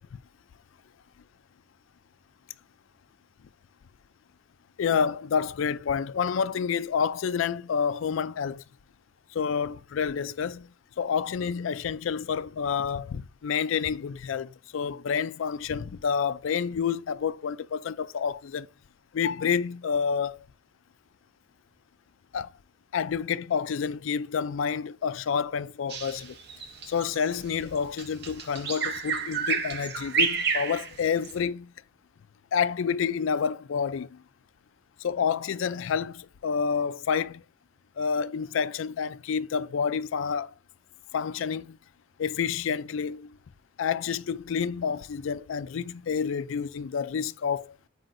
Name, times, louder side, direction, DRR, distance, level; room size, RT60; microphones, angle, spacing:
voice 1, 4.8-8.6 9.3-10.7 11.0-18.7 19.1-20.4 22.3-22.5 22.9-26.4 26.9-31.7 32.5-34.2 35.0-37.4 38.0-40.5 41.1-41.8 42.2-43.4 43.8-47.7, left 6 dB, 75° left, 0.4 m, -29 dB
Bird vocalization bird call bird song, 25.9-31.4, right 5 dB, 55° right, 0.9 m, -30 dB
7.7 x 4.9 x 2.6 m
head